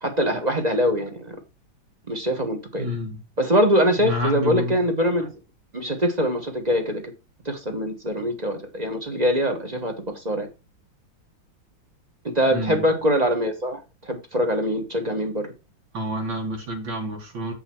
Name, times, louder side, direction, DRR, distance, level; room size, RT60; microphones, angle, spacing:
voice 1, 0.0-1.4 2.1-2.9 3.4-5.3 5.7-7.0 7.4-10.5 12.3-15.5, equal, 25° right, 1.1 m, -23 dB
voice 2, 2.8-3.2 4.0-4.8 12.5-12.9 15.9-17.5, equal, 75° right, 2.5 m, -28 dB
8.1 x 5.6 x 4.4 m
omnidirectional pair, 2.1 m